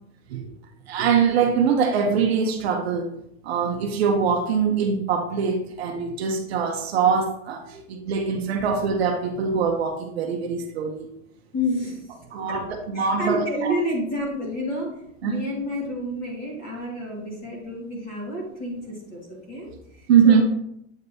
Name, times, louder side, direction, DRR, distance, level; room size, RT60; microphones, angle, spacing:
voice 1, 0.9-3.1 3.4-11.1 12.3-12.6 12.9-13.7 15.2-15.4 20.1-20.4, right 6 dB, 50° right, 3 dB, 0.8 m, -22 dB
voice 2, 11.5-12.2 12.5-12.6 12.9-14.9 15.2-20.4, equal, 20° left, -3 dB, 1.7 m, -30 dB
8.0 x 5.2 x 2.7 m, 0.76 s
supercardioid pair, 170°, 41 cm